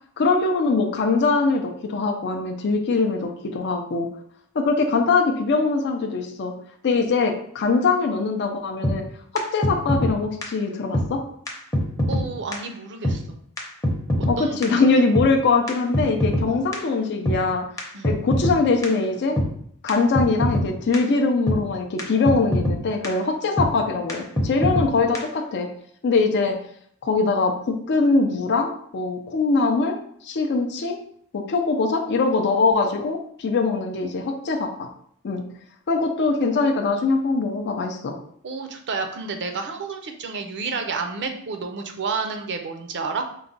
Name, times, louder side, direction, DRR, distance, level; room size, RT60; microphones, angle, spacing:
voice 1, 0.2-4.1 4.5-6.5 6.8-9.0 9.3-11.2 14.3-17.7 18.0-19.4 19.8-25.7 26.0-26.6 27.0-30.0 30.2-31.0 31.3-34.9 35.2-35.4 35.9-38.2, left 3 dB, 50° left, 3 dB, 0.4 m, -22 dB
sound 1, 8.8-9.0 9.4-9.5 9.6-10.1 10.4-10.5 10.9-11.1 11.5-11.6 11.7-12.2 12.5-12.6 13.0-13.2 13.6-13.7 13.8-14.3 14.6-14.7 15.1-15.3 15.7-16.5 16.7-16.8 17.3-17.4 17.8-17.9 18.0-18.6 18.8-18.9 19.4-19.5 19.9-20.0 20.1-20.7 20.9-21.0 21.5-21.6 22.0-22.1 22.3-22.8 23.0-23.1 23.6-23.7 24.1-24.2 24.4-24.9 25.1-25.2, equal, 15° left, 0.7 m, -22 dB
voice 2, 12.1-13.4 14.4-15.0 16.5-16.7 17.9-18.1 38.4-43.3, right 4 dB, 50° right, 5 dB, 0.5 m, -30 dB
4.6 x 2.2 x 3.9 m, 0.65 s
head